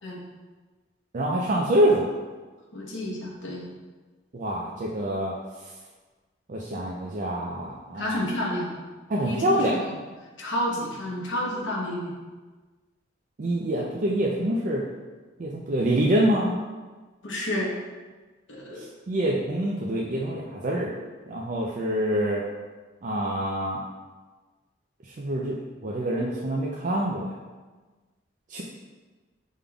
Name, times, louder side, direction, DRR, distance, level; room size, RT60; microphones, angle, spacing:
voice 1, 1.1-2.1 4.3-5.3 6.5-8.2 9.1-9.8 13.4-14.8 15.4-16.6 18.8-20.9 21.3-22.5 23.0-23.8 25.2-25.6 25.8-27.3 28.5-28.6, right 1 dB, 45° right, -4 dB, 0.4 m, -26 dB
voice 2, 2.7-3.6 8.0-8.8 9.2-10.0 10.4-12.1 17.2-17.7 18.5-18.8, left 1 dB, 80° left, -2 dB, 1.0 m, -30 dB
5.1 x 3.6 x 2.3 m, 1.3 s
head